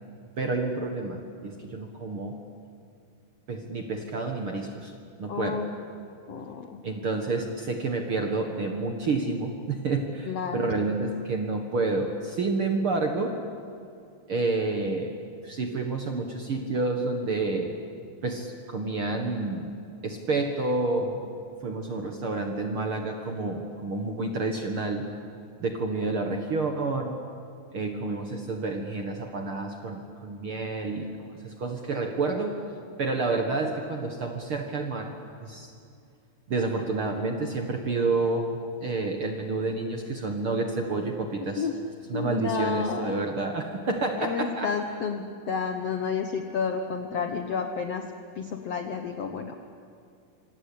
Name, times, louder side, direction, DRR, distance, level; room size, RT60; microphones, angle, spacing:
voice 1, 0.4-2.4 3.5-4.9 5.2-5.6 6.8-13.4 14.3-15.1 15.4-17.7 18.2-19.7 20.0-21.2 21.6-25.1 25.6-27.2 27.7-32.6 33.0-35.1 35.4-35.7 36.5-41.6 42.1-44.7, right 3 dB, 50° right, 4 dB, 1.7 m, -29 dB
voice 2, 5.3-6.8 10.3-10.7 41.6-41.8 42.1-43.2 44.2-48.1 48.3-49.7, left 6 dB, 65° left, 5 dB, 1.5 m, -31 dB
26.5 x 26.0 x 8.7 m, 2.5 s
omnidirectional pair, 4.4 m